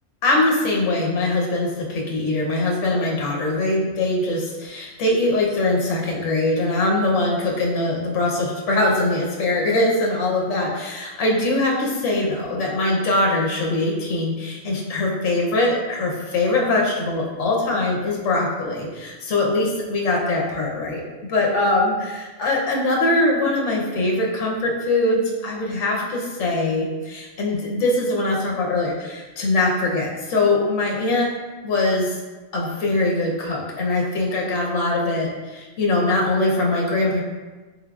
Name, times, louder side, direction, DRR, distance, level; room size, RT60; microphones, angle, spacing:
voice 1, 0.2-21.0 21.3-31.3 31.6-32.2 32.5-37.2, left 2 dB, 70° left, -2 dB, 1.0 m, -22 dB
3.5 x 3.4 x 2.3 m, 1.2 s
omnidirectional pair, 1.4 m